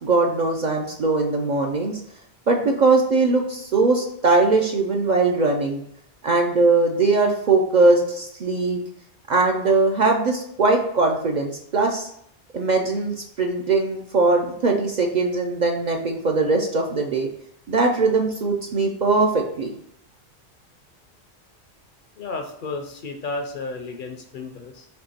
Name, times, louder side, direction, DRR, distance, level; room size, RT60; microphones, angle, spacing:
voice 1, 0.0-2.0 2.5-5.8 6.2-8.8 9.3-12.1 12.5-13.1 13.4-17.3 17.7-19.7, right 3 dB, 55° right, 1 dB, 0.5 m, -20 dB
voice 2, 22.2-24.9, left 3 dB, 55° left, 4 dB, 0.6 m, -32 dB
4.4 x 2.8 x 4.1 m, 0.72 s
omnidirectional pair, 1.1 m